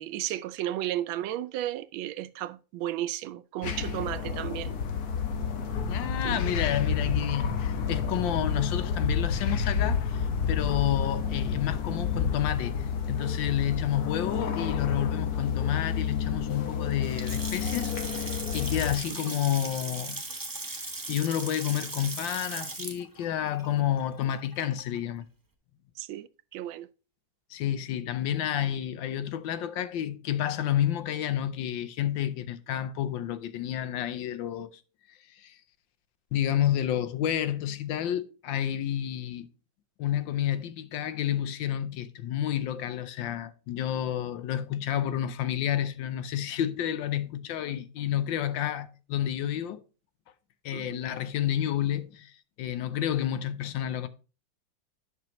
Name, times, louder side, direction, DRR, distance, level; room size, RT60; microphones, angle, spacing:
voice 1, 0.0-4.7 6.2-6.5 14.5-14.6 19.1-19.3 26.0-26.9 50.7-51.0, right 13 dB, 85° right, 1.3 m, -34 dB
sound 1, 3.6-19.0, left 6 dB, 60° left, 1.3 m, -30 dB
voice 2, 5.9-20.2 21.1-25.2 27.5-34.7 35.4-35.6 36.3-39.5 40.0-49.8 50.6-52.3 52.6-54.1, left 11 dB, 75° left, 1.4 m, -30 dB
Water tap faucet / Sink (filling or washing) / Splash splatter, 16.9-25.0, right 2 dB, 20° right, 0.5 m, -38 dB
10.0 x 6.1 x 3.0 m
omnidirectional pair, 2.1 m